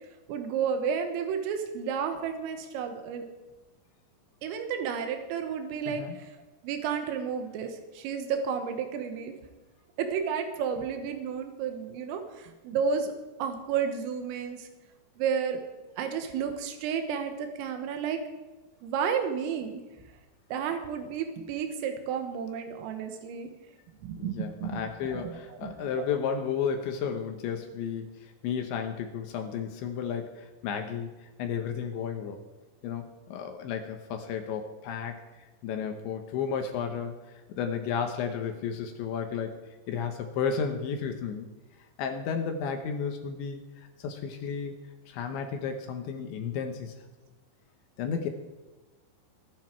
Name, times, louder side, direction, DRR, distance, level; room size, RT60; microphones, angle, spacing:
voice 1, 0.3-3.3 4.4-6.3 6.6-9.3 10.0-13.1 13.4-14.7 15.2-15.6 16.0-18.2 18.8-19.8 20.5-23.5 24.0-26.1, right 7 dB, 90° right, 6 dB, 4.0 m, -32 dB
voice 2, 5.9-6.2 24.2-32.4 32.8-35.2 35.6-39.5 39.9-41.5 42.0-44.7 45.1-46.9 48.0-48.3, left 6 dB, 75° left, 5 dB, 3.2 m, -33 dB
23.0 x 9.6 x 4.6 m, 1.2 s
omnidirectional pair, 5.7 m